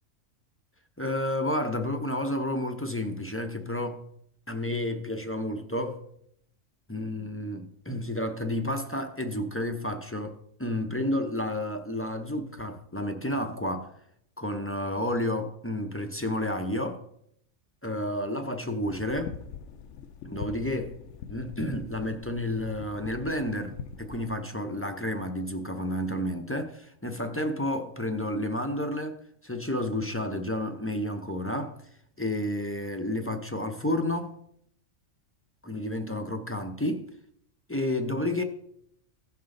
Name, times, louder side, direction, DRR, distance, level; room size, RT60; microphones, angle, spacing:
voice 1, 1.0-4.0 4.5-6.0 6.9-13.9 14.4-17.0 17.8-19.3 20.2-21.0 21.3-31.8 32.2-34.3 35.6-37.1 37.7-38.4, left 1 dB, 15° left, 0.5 m, -31 dB
sound 1, 18.9-24.3, left 7 dB, 70° left, 0.9 m, -43 dB
16.0 x 5.6 x 3.8 m
omnidirectional pair, 1.4 m